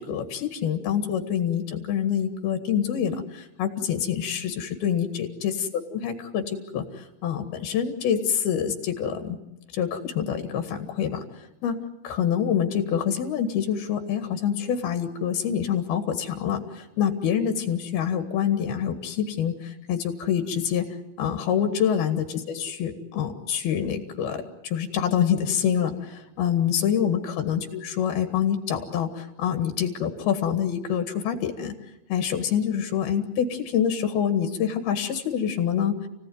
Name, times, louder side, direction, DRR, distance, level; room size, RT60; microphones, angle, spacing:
voice 1, 0.0-5.7 5.9-6.9 7.2-9.4 9.7-11.2 11.6-11.8 12.0-20.9 21.2-31.7 32.1-36.1, left 8 dB, 85° left, 6 dB, 3.9 m, -26 dB
29.5 x 17.5 x 9.5 m, 0.93 s
omnidirectional pair, 4.3 m